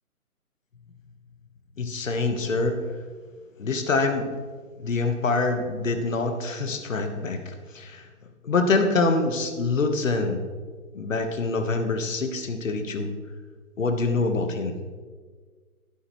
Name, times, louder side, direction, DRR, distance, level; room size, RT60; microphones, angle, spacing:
voice 1, 1.8-2.8 3.6-4.3 4.8-8.1 8.4-10.4 10.9-13.1 13.8-14.7, left 3 dB, 60° left, 6 dB, 1.4 m, -25 dB
11.5 x 11.0 x 3.1 m, 1.5 s
hypercardioid pair, 170°, 44 cm